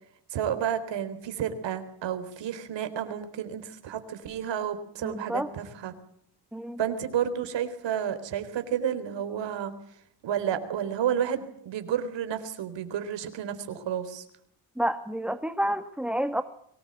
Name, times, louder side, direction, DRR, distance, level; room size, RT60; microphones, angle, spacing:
voice 1, 0.3-5.9 6.8-9.7 10.2-14.2, right 9 dB, 85° right, 9 dB, 3.9 m, -31 dB
voice 2, 5.0-5.5 6.5-6.8 14.8-16.4, right 1 dB, ahead, 9 dB, 1.4 m, -29 dB
23.5 x 19.0 x 9.0 m, 0.71 s
cardioid pair, 125°, 42 cm